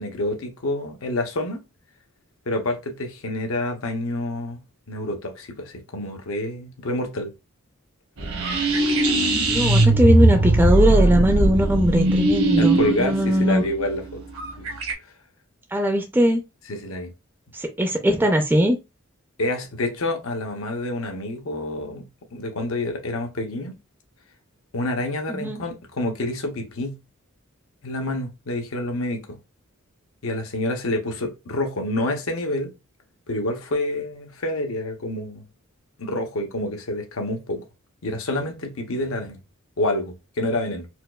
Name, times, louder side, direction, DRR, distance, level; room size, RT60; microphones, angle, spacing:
voice 1, 0.0-1.6 2.5-4.6 4.9-7.3 12.6-14.2 14.6-14.7 16.7-17.1 19.4-23.8 24.7-27.0 27.8-29.4 30.2-32.7 33.3-35.4 36.0-37.6 38.0-39.4 39.8-40.9, left 1 dB, 70° left, 0.8 m, -28 dB
sound 1, 8.2-14.9, right 2 dB, 75° right, 1.0 m, -20 dB
voice 2, 9.5-13.6 15.7-16.4 17.5-18.8 25.3-25.6, equal, 10° right, 0.4 m, -20 dB
4.4 x 2.3 x 2.3 m
head